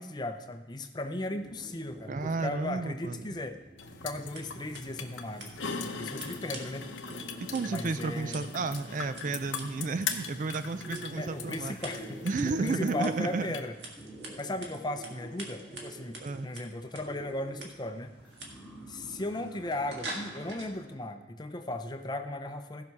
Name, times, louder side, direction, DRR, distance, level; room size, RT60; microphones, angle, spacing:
voice 1, 0.0-3.6 4.0-5.5 5.8-6.9 7.6-8.5 11.2-12.2 12.6-13.8 14.4-18.1 18.9-22.8, left 1 dB, 25° left, 7 dB, 0.6 m, -36 dB
sound 1, 1.3-20.9, right 1 dB, 5° right, 2.1 m, -48 dB
voice 2, 2.1-3.2 7.4-11.7 12.2-13.5 16.2-16.5, right 3 dB, 45° right, 11 dB, 0.4 m, -32 dB
sound 2, 3.8-13.6, left 5 dB, 90° left, 0.9 m, -40 dB
Scissors, 4.2-20.7, right 2 dB, 65° right, 1.8 m, -48 dB
15.5 x 5.9 x 4.7 m, 1.2 s
head